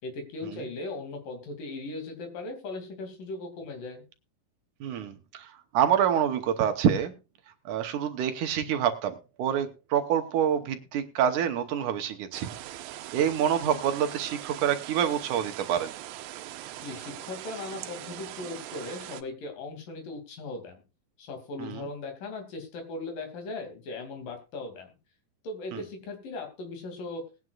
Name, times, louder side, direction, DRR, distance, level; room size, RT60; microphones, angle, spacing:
voice 1, 0.0-4.0 16.8-20.8 21.2-24.9 25.4-27.3, left 2 dB, 70° left, 5 dB, 4.2 m, -38 dB
voice 2, 4.8-7.1 7.7-12.5 13.1-15.9 21.6-21.9 25.7-25.8, right 9 dB, 70° right, 8 dB, 2.3 m, -27 dB
sound 1, 12.3-19.2, right 14 dB, 85° right, 2.6 m, -41 dB
19.5 x 9.4 x 2.4 m, 0.29 s
omnidirectional pair, 4.1 m